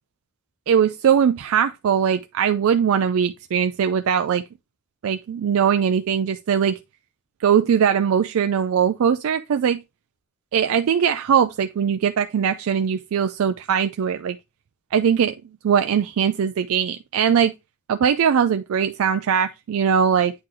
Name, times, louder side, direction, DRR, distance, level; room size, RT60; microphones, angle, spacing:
voice 1, 0.7-4.4 5.0-6.8 7.4-9.8 10.5-14.4 14.9-15.3 15.6-17.5 17.9-20.3, right 7 dB, 85° right, 0.4 m, -20 dB
8.8 x 3.8 x 3.0 m
head